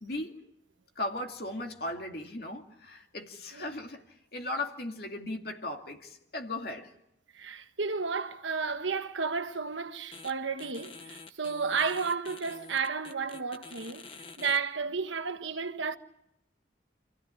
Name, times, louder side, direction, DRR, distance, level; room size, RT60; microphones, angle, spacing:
voice 1, 0.0-0.4 1.0-4.0 4.3-6.9, left 2 dB, 55° left, 2.4 m, -37 dB
voice 2, 7.3-14.1 14.4-16.0, right 5 dB, 80° right, 1.3 m, -32 dB
sound 1, 10.1-10.3 10.6-14.6, left 4 dB, 30° left, 1.1 m, -47 dB
27.0 x 15.5 x 9.9 m
head